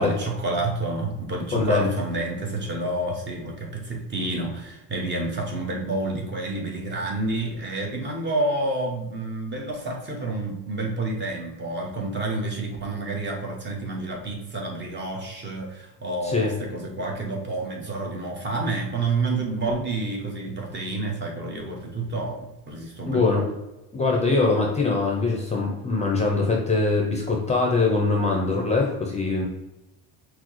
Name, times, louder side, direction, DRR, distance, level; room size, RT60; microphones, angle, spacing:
voice 1, 0.0-23.4, right 2 dB, 30° right, 0 dB, 0.9 m, -29 dB
voice 2, 1.5-1.9 16.3-16.5 23.1-23.4 23.9-29.5, left 3 dB, 15° left, -1 dB, 0.6 m, -22 dB
6.0 x 2.0 x 3.1 m, 0.96 s
cardioid pair, 125°, 39 cm